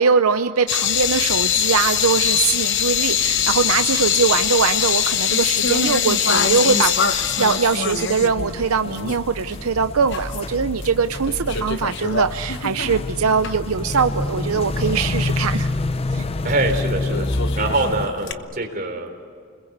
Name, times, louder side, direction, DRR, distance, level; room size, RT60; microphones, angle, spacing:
voice 1, 0.0-15.7 16.1-16.2, right 5 dB, 80° right, 9 dB, 0.7 m, -21 dB
sound 1, 0.7-9.3 9.5-9.6 10.1-10.9 11.1-13.5 14.0-14.1 16.6-16.7 17.1-18.3, left 8 dB, 55° left, 1.0 m, -22 dB
sound 2, 0.8-18.1, left 2 dB, 25° left, 0.6 m, -29 dB
voice 2, 16.4-17.3 17.6-19.2, right 2 dB, 40° right, 2 dB, 3.8 m, -24 dB
30.0 x 21.5 x 8.1 m, 2.2 s
head